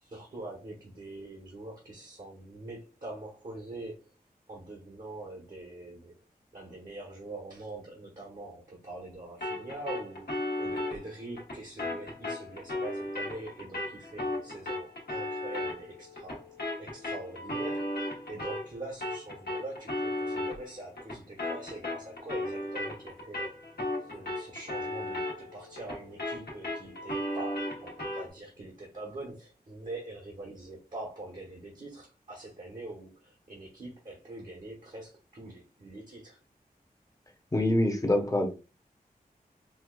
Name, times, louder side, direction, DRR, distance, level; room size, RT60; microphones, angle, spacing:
voice 1, 0.0-4.0 4.5-6.1 6.5-16.5 16.8-23.5 24.1-36.4, right 2 dB, 55° right, -1 dB, 1.1 m, -44 dB
sound 1, 9.4-18.7 19.0-28.3, left 1 dB, 90° left, 1.1 m, -36 dB
voice 2, 37.5-38.5, left 1 dB, 20° left, 3 dB, 0.7 m, -25 dB
4.5 x 2.3 x 2.3 m, 0.32 s
wide cardioid pair, 80°, 16 cm